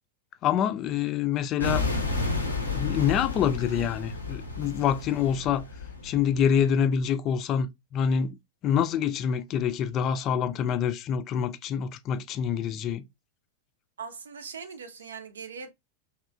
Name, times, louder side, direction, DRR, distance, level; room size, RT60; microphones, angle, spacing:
voice 1, 0.4-1.8 2.7-5.7 6.0-8.4 8.6-13.0, left 8 dB, 35° left, 0.3 m, -26 dB
sound 1, 1.6-6.8, left 3 dB, 85° left, 0.7 m, -32 dB
voice 2, 14.0-15.7, right 6 dB, 70° right, 0.5 m, -40 dB
3.1 x 2.8 x 2.3 m
figure-of-eight pair, 90°, 0 cm